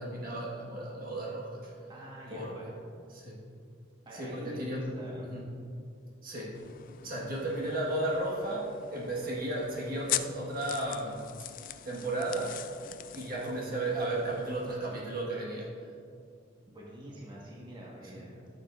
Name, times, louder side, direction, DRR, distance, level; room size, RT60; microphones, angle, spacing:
voice 1, 0.0-1.7 2.3-2.6 3.1-3.4 4.1-4.9 5.2-5.4 6.2-6.6 7.0-11.2 11.8-12.6 13.1-15.8, right 1 dB, 50° right, -4 dB, 1.6 m, -34 dB
voice 2, 1.9-2.8 4.0-5.3 16.7-18.5, right 1 dB, 25° right, -5 dB, 1.5 m, -46 dB
sound 1, 6.5-14.8, left 12 dB, 45° left, 0.3 m, -41 dB
13.5 x 6.9 x 2.5 m, 2.3 s
head